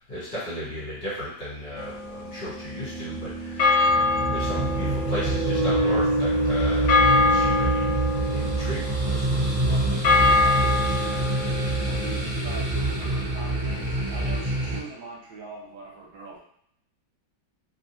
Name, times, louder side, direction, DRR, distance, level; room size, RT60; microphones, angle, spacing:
voice 1, 0.1-9.2, equal, 50° left, -9 dB, 1.8 m, -35 dB
sound 1, 0.7-0.8 2.3-9.1, right 1 dB, 50° right, 0.6 m, -28 dB
sound 2, 1.8-3.1 3.6-12.2, left 3 dB, 75° left, 0.7 m, -25 dB
sound 3, 3.8-14.8, right 2 dB, 30° right, 0.9 m, -27 dB
voice 2, 9.7-11.4 11.8-16.4, right 3 dB, 75° right, -3 dB, 1.4 m, -41 dB
3.5 x 2.3 x 2.7 m, 0.72 s
omnidirectional pair, 2.2 m